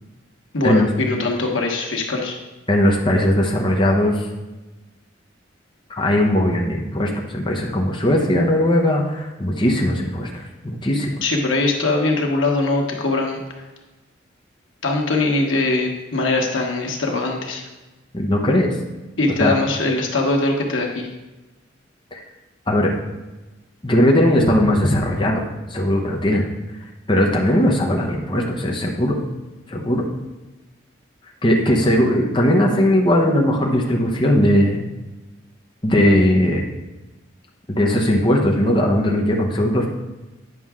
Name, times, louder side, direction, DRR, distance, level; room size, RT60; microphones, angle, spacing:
voice 1, 0.5-2.4 11.2-13.4 14.8-17.7 19.2-21.1, left 2 dB, 85° left, 1 dB, 1.3 m, -21 dB
voice 2, 2.7-4.3 6.0-11.1 18.1-18.7 19.4-19.5 22.1-22.2 22.7-22.9 23.8-25.4 25.7-26.5 27.1-29.2 29.7-30.0 31.4-34.8 35.8-36.7 37.7-39.9, left 1 dB, 25° left, -1 dB, 0.9 m, -18 dB
9.4 x 5.9 x 3.7 m, 1.1 s
head